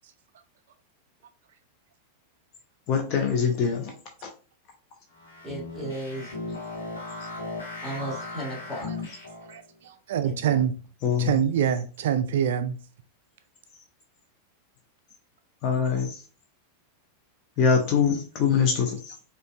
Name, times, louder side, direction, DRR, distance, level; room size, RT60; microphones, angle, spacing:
voice 1, 2.9-3.9 11.0-11.3 15.6-16.2 17.6-19.1, left 6 dB, 40° left, 0.7 m, -23 dB
sound 1, 5.1-9.6, left 2 dB, 70° left, 1.3 m, -37 dB
voice 2, 5.4-6.3 7.8-9.1 10.2-10.7, right 1 dB, 10° left, 1.7 m, -35 dB
voice 3, 9.5-10.7 11.2-12.8, right 9 dB, 60° right, 0.3 m, -25 dB
5.1 x 2.5 x 2.3 m
figure-of-eight pair, 90°, 0 cm